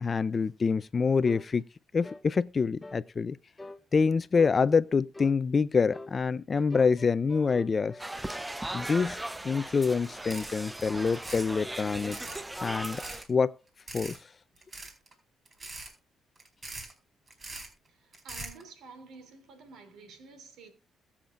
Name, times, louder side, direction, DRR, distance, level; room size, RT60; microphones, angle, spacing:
voice 1, 0.0-1.6 1.9-3.4 3.9-8.0 8.7-9.2 9.4-12.2 12.6-13.0 13.3-13.6 13.9-14.2, left 5 dB, 35° left, 0.5 m, -26 dB
sound 1, 1.2-1.5 2.0-2.3 2.8-3.1 3.6-3.8 4.3-4.6 5.1-5.4 5.9-6.2 6.7-8.5, left 2 dB, 15° left, 0.9 m, -45 dB
sound 2, 8.0-13.2, right 1 dB, 10° right, 0.7 m, -38 dB
sound 3, 10.0-10.1 10.3-10.7 11.1-11.5 11.9-12.4 12.8-13.3 13.9-14.2 14.6-15.1 15.5-15.9 16.4-16.9 17.3-17.7 18.1-18.6, right 2 dB, 35° right, 4.5 m, -42 dB
voice 2, 17.8-20.7, right 4 dB, 80° right, 3.1 m, -50 dB
21.5 x 7.3 x 2.5 m
cardioid pair, 90°, 0 cm